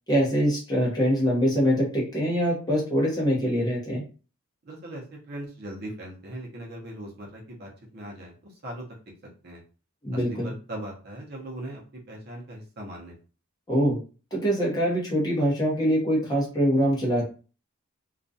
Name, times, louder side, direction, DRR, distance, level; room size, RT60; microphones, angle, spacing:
voice 1, 0.1-4.0 10.0-10.5 13.7-14.0 14.3-17.2, equal, 20° left, -4 dB, 0.7 m, -24 dB
voice 2, 4.6-8.9 9.4-9.6 10.1-11.8 12.1-13.1, right 1 dB, 45° right, -2 dB, 0.6 m, -39 dB
2.3 x 2.1 x 2.6 m, 0.36 s
head